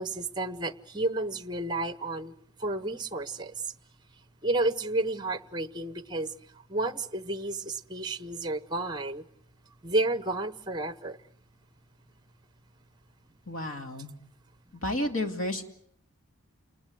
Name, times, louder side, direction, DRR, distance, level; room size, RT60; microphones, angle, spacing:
voice 1, 0.0-2.3 2.6-3.6 4.4-6.3 6.7-9.2 9.8-11.2, right 2 dB, 20° right, 13 dB, 1.0 m, -31 dB
voice 2, 13.5-14.1 14.8-15.6, left 1 dB, 70° left, 6 dB, 2.6 m, -31 dB
29.0 x 20.0 x 7.9 m, 0.71 s
head